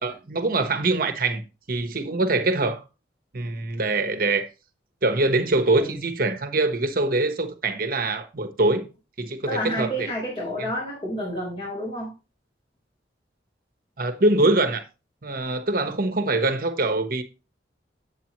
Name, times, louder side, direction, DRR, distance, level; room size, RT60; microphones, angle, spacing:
voice 1, 0.0-1.4 1.7-2.8 3.3-4.5 5.0-8.9 9.2-10.1 14.0-14.8 15.2-17.2, right 2 dB, 55° right, 1.0 m, -23 dB
voice 2, 9.4-12.1, equal, 30° left, 4.3 m, -30 dB
8.4 x 8.3 x 3.0 m
head